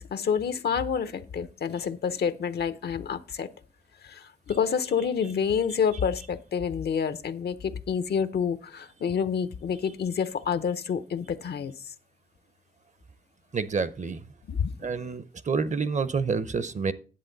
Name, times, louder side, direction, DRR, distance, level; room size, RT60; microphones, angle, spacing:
voice 1, 0.0-3.5 4.0-11.9 14.5-14.7, left 7 dB, 80° left, 0.7 m, -28 dB
voice 2, 13.5-14.2 14.8-16.9, right 5 dB, 50° right, 0.7 m, -28 dB
10.5 x 7.7 x 3.9 m
cardioid pair, 60°, 17 cm